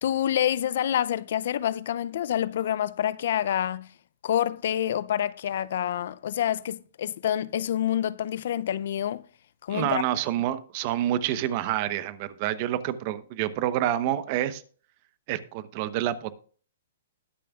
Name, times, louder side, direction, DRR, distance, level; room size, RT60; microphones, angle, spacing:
voice 1, 0.0-3.9 4.2-9.2 9.6-10.0, left 10 dB, 60° left, 0.4 m, -27 dB
voice 2, 9.7-14.6 15.3-16.4, right 12 dB, 40° right, 0.9 m, -28 dB
20.5 x 6.8 x 2.4 m
hypercardioid pair, 140°, 0 cm